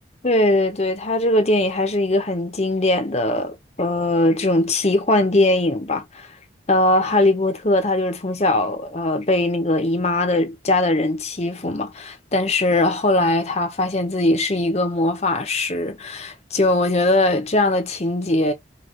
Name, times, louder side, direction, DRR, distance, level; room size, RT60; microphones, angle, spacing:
voice 1, 0.2-6.3 6.7-18.5, left 2 dB, 35° left, 0.8 m, -20 dB
5.2 x 2.5 x 3.8 m
head